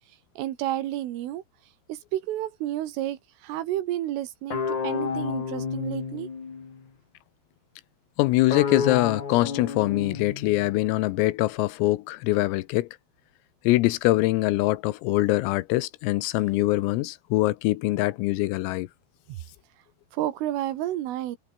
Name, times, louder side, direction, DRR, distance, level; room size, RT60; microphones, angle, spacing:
voice 1, 0.4-1.4 1.9-6.3 19.3-19.4 20.1-21.4, right 13 dB, 75° right, 4.1 m, -31 dB
sound 1, 4.5-6.8 8.5-10.9, left 5 dB, 35° left, 5.0 m, -31 dB
voice 2, 8.2-12.9 13.7-18.9, left 19 dB, 85° left, 3.6 m, -23 dB
omnidirectional pair, 6.0 m